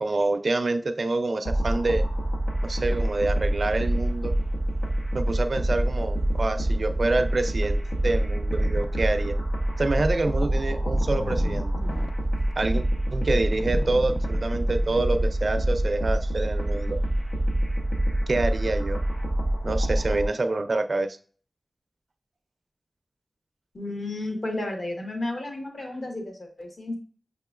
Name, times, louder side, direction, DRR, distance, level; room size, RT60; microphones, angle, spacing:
voice 1, 0.0-2.0 2.6-4.4 5.1-9.4 9.8-11.7 12.6-12.8 13.1-17.0 18.3-19.0 19.6-21.2, right 2 dB, 55° right, 9 dB, 0.4 m, -27 dB
sound 1, 1.5-20.3, right 1 dB, 85° left, 1.0 m, -26 dB
sound 2, 8.5-8.9 9.3-9.6 10.1-15.1, left 2 dB, 40° left, 0.4 m, -39 dB
voice 2, 23.7-26.9, left 2 dB, 60° left, 2 dB, 1.2 m, -32 dB
6.1 x 2.9 x 2.4 m, 0.42 s
wide cardioid pair, 100°, 0 cm